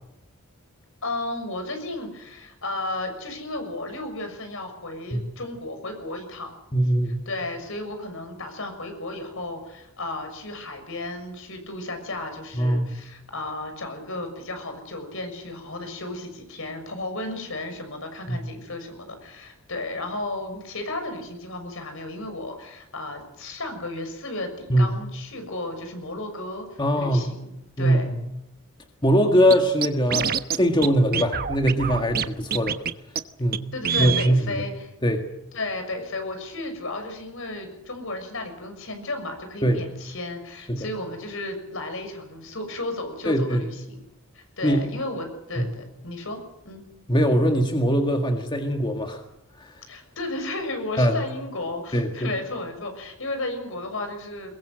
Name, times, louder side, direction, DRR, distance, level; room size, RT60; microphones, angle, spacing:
voice 1, 1.0-6.5 7.3-27.5 27.8-28.1 33.7-34.9 35.5-44.0 44.3-46.8 49.9-54.5, left 2 dB, 65° left, 6 dB, 6.5 m, -34 dB
voice 2, 6.7-7.2 12.5-12.9 18.3-18.5 24.7-24.9 26.8-27.2 27.8-28.0 29.0-32.8 33.4-33.7 34.0-34.5 35.0-35.3 39.6-39.8 40.7-40.9 43.3-43.6 44.6-44.9 45.6-45.7 47.1-49.2 49.6-49.8 51.0-51.1 51.9-52.3, equal, 20° left, 4 dB, 1.8 m, -22 dB
Scratching (performance technique), 29.5-29.6 29.8-30.6 30.8-30.9 31.1-32.3 32.5-32.9 33.2-33.3 33.5-33.6 33.8-34.3, right 7 dB, 45° right, 1.1 m, -25 dB
22.5 x 22.0 x 7.8 m, 0.85 s
head